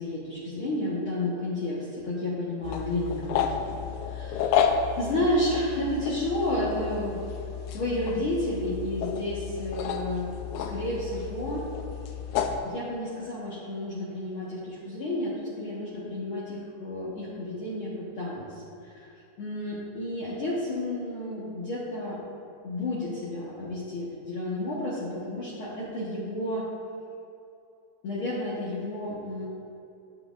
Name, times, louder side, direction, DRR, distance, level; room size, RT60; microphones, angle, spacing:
voice 1, 0.0-3.8 4.0-7.2 7.7-11.7 12.6-19.1 19.4-22.2 22.6-26.7 28.0-29.4, left 1 dB, 55° left, -8 dB, 1.7 m, -31 dB
sound 1, 2.6-12.6, left 7 dB, 80° left, 2.0 m, -31 dB
13.0 x 7.6 x 2.5 m, 2.7 s
omnidirectional pair, 3.5 m